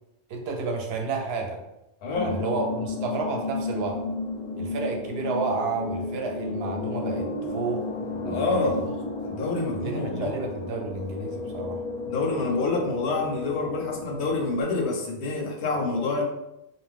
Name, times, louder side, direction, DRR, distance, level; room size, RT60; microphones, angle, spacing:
voice 1, 0.3-1.6 2.1-4.0 4.6-8.9 9.7-11.8, right 4 dB, 70° right, 2 dB, 0.8 m, -31 dB
voice 2, 2.0-2.4 8.3-8.9 9.2-10.3 12.1-16.2, left 3 dB, 75° left, -1 dB, 0.9 m, -27 dB
sound 1, 2.1-14.6, left 3 dB, 55° left, 0.7 m, -33 dB
2.6 x 2.1 x 3.3 m, 0.88 s
omnidirectional pair, 1.1 m